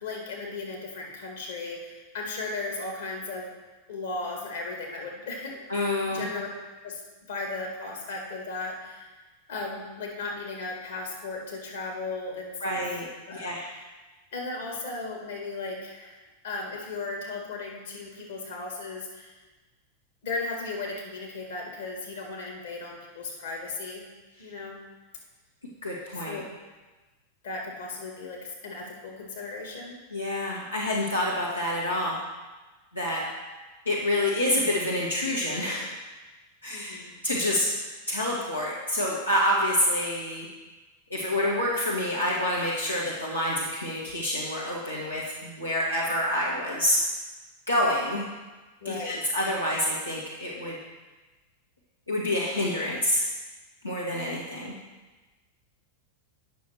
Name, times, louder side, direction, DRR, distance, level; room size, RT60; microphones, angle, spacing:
voice 1, 0.0-3.5 3.9-5.6 6.1-6.5 6.8-9.1 9.5-12.9 13.3-13.5 14.3-16.2 16.4-19.3 20.2-24.1 24.4-24.8 26.2-26.5 27.4-30.0 36.7-37.2 48.8-49.2, left 3 dB, 60° left, 0 dB, 2.0 m, -36 dB
voice 2, 5.7-6.3 12.6-13.1 13.3-13.7 25.8-26.4 30.1-32.2 32.9-33.2 33.8-35.9 36.6-37.7 38.1-40.5 41.1-47.0 47.7-48.3 48.8-50.8 52.1-53.2 53.8-54.7, left 1 dB, 85° left, -5 dB, 1.3 m, -27 dB
9.2 x 6.3 x 4.4 m, 1.2 s
figure-of-eight pair, 90°, 0 cm